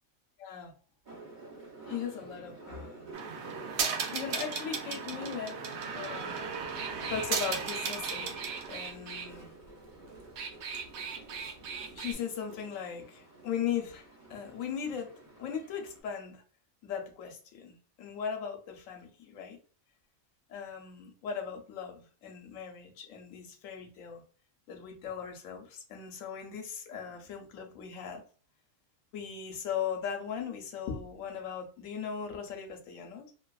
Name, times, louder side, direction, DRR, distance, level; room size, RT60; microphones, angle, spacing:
voice 1, 0.4-0.7 1.9-3.2 4.1-6.6 7.1-8.4 8.7-9.5 11.9-16.4 16.8-19.6 20.5-24.2 24.7-28.2 29.1-33.3, left 7 dB, 70° left, 4 dB, 1.0 m, -38 dB
sound 1, 1.1-16.0, right 2 dB, 40° right, 0.7 m, -50 dB
sound 2, 3.1-9.3 10.2-12.1, right 6 dB, 80° right, 1.0 m, -36 dB
2.7 x 2.3 x 2.2 m, 0.40 s
omnidirectional pair, 1.5 m